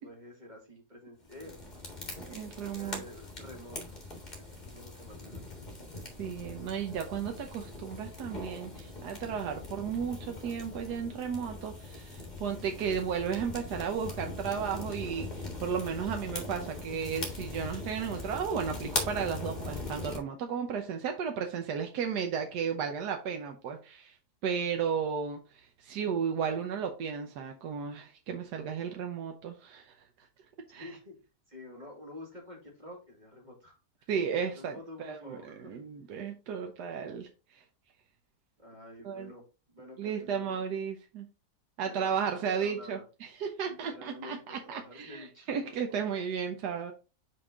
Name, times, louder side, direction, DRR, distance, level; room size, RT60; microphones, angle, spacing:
voice 1, 0.0-1.6 2.7-3.9 4.4-5.7 30.7-31.1 31.5-34.1 34.4-35.8 38.6-40.6 41.8-43.0 43.7-45.5, left 1 dB, 30° right, 2.2 m, -49 dB
sound 1, 1.3-20.2, left 2 dB, 30° left, 1.8 m, -41 dB
voice 2, 2.3-3.0 6.2-24.2 24.4-30.0 30.7-30.9 34.1-37.6 39.0-39.3 40.0-41.3 41.8-46.9, right 7 dB, 85° right, 1.4 m, -34 dB
5.5 x 5.4 x 3.6 m
omnidirectional pair, 1.7 m